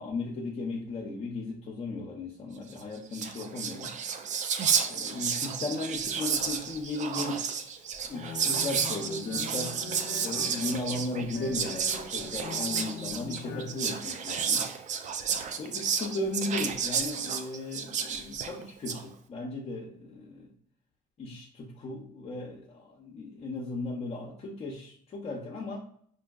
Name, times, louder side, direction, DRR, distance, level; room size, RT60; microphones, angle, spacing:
voice 1, 0.0-4.0 4.8-9.8 10.2-14.7 15.6-20.5 21.2-25.8, left 2 dB, 40° left, -3 dB, 0.7 m, -36 dB
Whispering, 2.8-2.9 3.1-19.0, right 6 dB, 45° right, 0.4 m, -31 dB
sound 1, 8.0-13.8, left 6 dB, 85° left, 0.5 m, -42 dB
5.0 x 2.6 x 2.3 m, 0.62 s
cardioid pair, 110°, 17 cm